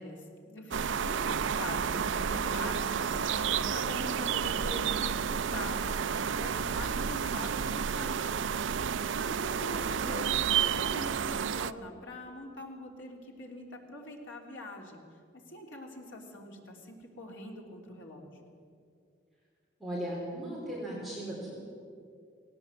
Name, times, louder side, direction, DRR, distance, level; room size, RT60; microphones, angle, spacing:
voice 1, 0.0-8.3 9.3-15.0 15.5-18.4, left 1 dB, 90° left, 0 dB, 3.4 m, -43 dB
sound 1, 0.7-11.7, right 7 dB, 80° right, 0.5 m, -31 dB
voice 2, 19.8-21.6, right 1 dB, ahead, -5 dB, 4.3 m, -37 dB
18.5 x 17.5 x 8.1 m, 2.3 s
head